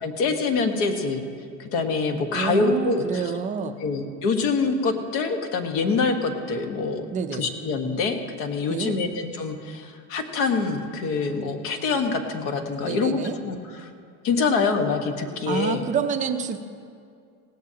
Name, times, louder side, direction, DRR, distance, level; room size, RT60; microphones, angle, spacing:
voice 1, 0.0-1.2 1.6-3.3 3.8-7.1 7.4-13.9 14.2-15.9, left 4 dB, 55° left, 5 dB, 1.4 m, -25 dB
voice 2, 2.3-3.8 7.1-7.5 8.7-8.9 12.8-13.4 15.5-16.6, right 6 dB, 20° right, 6 dB, 0.5 m, -28 dB
17.5 x 17.0 x 2.9 m, 2.3 s
cardioid pair, 165°, 37 cm